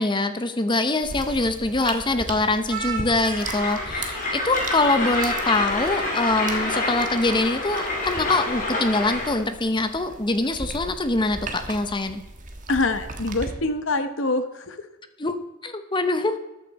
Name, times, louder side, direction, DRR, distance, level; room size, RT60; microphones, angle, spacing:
voice 1, 0.0-12.2 15.2-16.4, left 2 dB, 25° left, 9 dB, 0.8 m, -24 dB
sound 1, 1.0-13.5, right 2 dB, 40° right, 1.4 m, -38 dB
Speech, 1.8-4.4 4.7-5.7 6.0-6.8, right 3 dB, 60° right, 4.4 m, -34 dB
Train, 3.3-9.4, left 2 dB, 40° left, 2.7 m, -28 dB
voice 2, 12.7-14.8, left 2 dB, 65° left, 9 dB, 1.0 m, -25 dB
14.0 x 9.1 x 4.2 m, 1.0 s
head